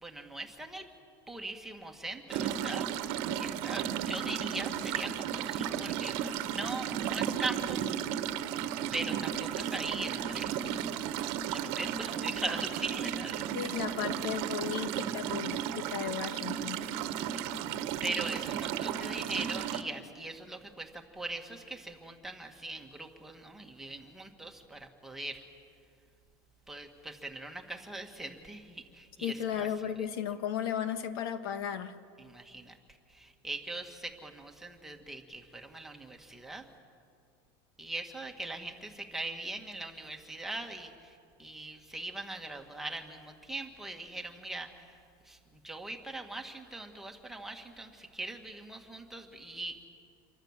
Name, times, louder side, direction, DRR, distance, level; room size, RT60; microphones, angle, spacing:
voice 1, 0.0-0.9 1.3-2.9 3.4-7.8 8.9-11.0 11.5-13.7 17.1-17.4 18.0-25.4 26.7-29.9 32.2-32.8 33.1-36.7 37.8-45.0 45.3-49.8, right 2 dB, 5° right, 2 dB, 1.8 m, -41 dB
sound 1, 2.3-19.8, right 9 dB, 55° right, 1.3 m, -34 dB
voice 2, 13.5-16.8 29.2-31.9, left 8 dB, 75° left, 9 dB, 1.7 m, -35 dB
28.5 x 23.5 x 7.4 m, 2.5 s
supercardioid pair, 155°, 12 cm